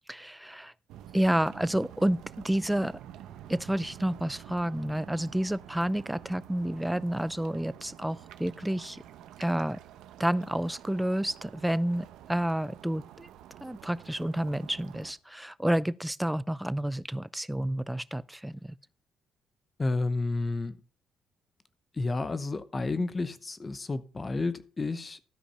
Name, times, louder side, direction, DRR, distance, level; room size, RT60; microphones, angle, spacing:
voice 1, 0.1-0.7 1.1-3.0 3.5-9.0 9.4-9.8 10.2-13.3 13.6-18.8, right 1 dB, 5° right, 0.5 m, -30 dB
sound 1, 0.9-15.1, right 11 dB, 90° right, 0.9 m, -49 dB
voice 2, 19.8-20.8 21.9-25.2, left 3 dB, 30° left, 0.9 m, -31 dB
13.0 x 5.1 x 5.6 m
cardioid pair, 90°, 0 cm